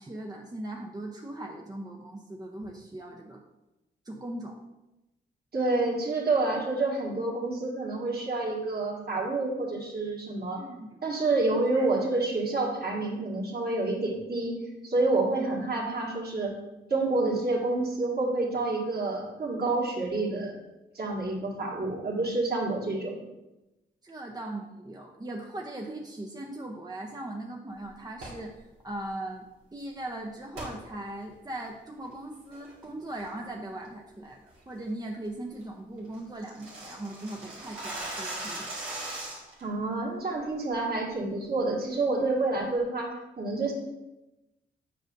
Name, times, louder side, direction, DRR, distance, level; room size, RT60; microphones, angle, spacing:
voice 1, 0.0-3.4 4.0-4.6 10.5-11.0 11.7-11.9 15.3-15.5 24.0-28.5 28.8-38.7, right 1 dB, 20° right, 1 dB, 0.7 m, -39 dB
voice 2, 5.5-10.6 11.0-16.5 16.9-20.6 21.0-23.2 39.6-43.7, right 2 dB, 50° right, -3 dB, 1.9 m, -28 dB
sound 1, 28.1-28.5 30.5-30.8 31.2-31.3 31.9-32.1 32.5-32.8 33.2-33.5 33.8-33.9 34.3-34.6 34.9-35.0 35.3-35.4 35.6-35.7 36.0-39.6, right 2 dB, 90° right, 1.7 m, -39 dB
7.7 x 5.0 x 2.6 m, 1.0 s
supercardioid pair, 55°, 21 cm